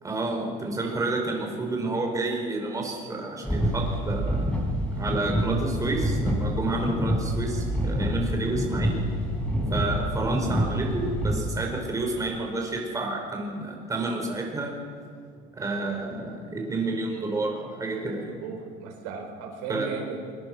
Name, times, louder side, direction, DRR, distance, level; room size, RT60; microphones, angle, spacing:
voice 1, 0.0-4.5 4.9-9.1 9.7-14.7 15.5-18.3 19.7-19.9, right 2 dB, 20° right, 1 dB, 4.9 m, -30 dB
sound 1, 3.4-11.4, equal, 5° left, 6.4 m, -27 dB
voice 2, 18.4-20.3, right 5 dB, 85° right, 2 dB, 5.0 m, -35 dB
22.0 x 21.5 x 6.2 m, 2.3 s
cardioid pair, 115°, 18 cm